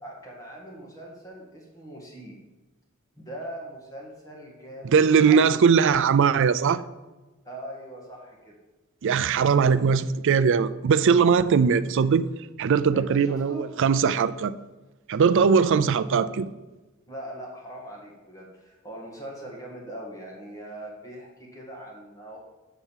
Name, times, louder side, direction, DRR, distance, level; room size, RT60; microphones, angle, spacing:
voice 1, 0.0-2.4 3.2-5.0 5.3-5.6 7.4-8.6 9.5-9.7 12.9-13.6 17.1-22.4, right 1 dB, 15° left, -3 dB, 2.0 m, -41 dB
voice 2, 4.8-6.8 9.0-12.2 12.6-14.5 15.1-16.5, right 6 dB, 60° right, 14 dB, 0.4 m, -20 dB
6.7 x 6.0 x 7.3 m, 1.2 s
head